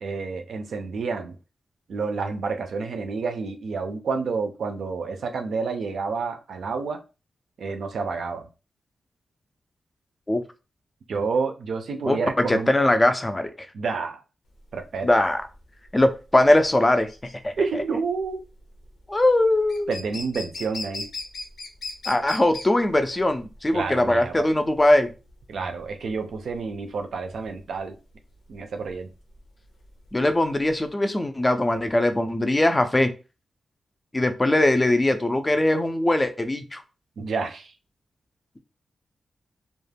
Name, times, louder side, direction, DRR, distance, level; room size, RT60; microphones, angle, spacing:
voice 1, 0.0-1.3 1.9-7.0 7.6-8.5 11.1-12.7 13.7-14.2 14.7-15.2 17.6-18.4 19.9-21.1 23.7-24.5 25.5-28.0 28.5-29.1 37.2-37.7, right 4 dB, 80° right, 0.4 m, -29 dB
voice 2, 12.0-13.7 15.0-15.4 15.9-17.1 17.4-17.8 19.1-19.9 22.1-25.1 30.1-33.1 34.1-36.8, left 1 dB, 15° left, 0.3 m, -21 dB
sound 1, 14.5-30.9, left 3 dB, 85° left, 0.6 m, -39 dB
2.3 x 2.1 x 3.3 m
wide cardioid pair, 135°, 0 cm